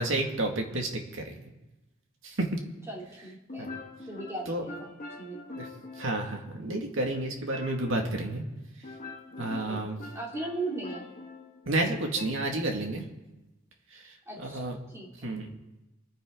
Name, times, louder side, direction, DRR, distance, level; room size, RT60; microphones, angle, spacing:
voice 1, 0.0-1.4 2.2-2.5 3.6-3.8 4.5-4.6 5.6-5.7 6.0-8.4 9.4-10.0 11.7-13.0 14.4-14.7 15.2-15.5, right 2 dB, 65° right, 2 dB, 2.3 m, -30 dB
sound 1, 0.7-0.8 3.5-6.7 7.5-8.3 8.8-12.3, left 2 dB, 40° left, 1.9 m, -44 dB
voice 2, 2.9-3.7 4.1-4.9 5.2-5.4 9.6-9.8 10.1-11.1 14.3-15.1, right 2 dB, 15° right, -3 dB, 3.2 m, -38 dB
25.0 x 9.8 x 4.0 m, 1.0 s
head